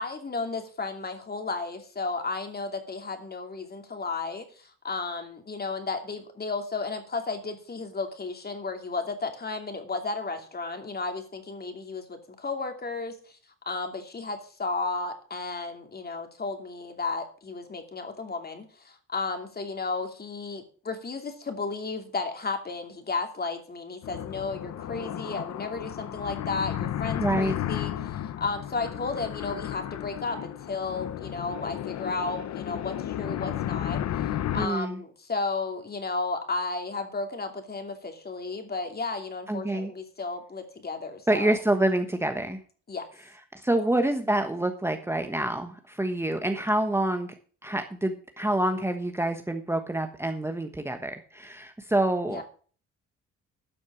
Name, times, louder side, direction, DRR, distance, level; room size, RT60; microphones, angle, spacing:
voice 1, 0.0-13.4 13.7-34.0 34.5-41.6 42.9-43.1 52.3-52.4, left 3 dB, 30° left, 5 dB, 2.7 m, -33 dB
sound 1, 24.0-34.7, left 11 dB, 60° left, 0.8 m, -33 dB
voice 2, 27.2-27.5 34.5-35.0 39.5-39.9 41.3-42.6 43.5-47.3 47.6-52.4, right 1 dB, 10° right, 6 dB, 1.2 m, -27 dB
12.0 x 6.3 x 7.2 m, 0.42 s
cardioid pair, 90°, 30 cm